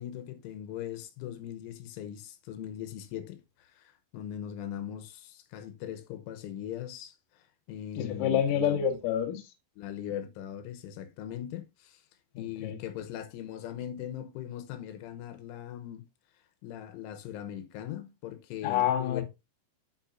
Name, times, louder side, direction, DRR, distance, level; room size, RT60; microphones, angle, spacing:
voice 1, 0.0-7.1 7.7-8.8 9.8-12.0 12.4-16.0 16.6-19.2, left 10 dB, 85° left, 3.4 m, -40 dB
voice 2, 8.0-9.5 12.3-12.8 18.6-19.2, left 9 dB, 70° left, 2.2 m, -28 dB
10.0 x 6.2 x 2.6 m
omnidirectional pair, 5.5 m